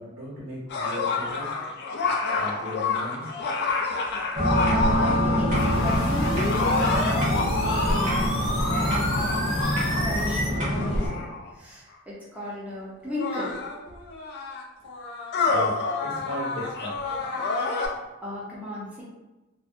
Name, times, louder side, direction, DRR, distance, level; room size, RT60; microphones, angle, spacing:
voice 1, 0.0-1.5 2.3-3.4 15.5-15.7 16.0-17.2, equal, 80° right, -6 dB, 1.2 m, -37 dB
sound 1, 0.7-11.5 12.4-12.5 13.1-17.9, left 3 dB, 55° left, 0.4 m, -29 dB
sound 2, 4.3-11.1, equal, 40° right, 0.8 m, -25 dB
voice 2, 4.7-8.4 8.6-9.4 10.0-11.3 11.5-13.6 18.2-19.0, left 1 dB, 5° right, -7 dB, 0.6 m, -35 dB
sound 3, 5.5-10.5, equal, 70° left, 0.8 m, -30 dB
2.6 x 2.1 x 2.4 m, 1.0 s
head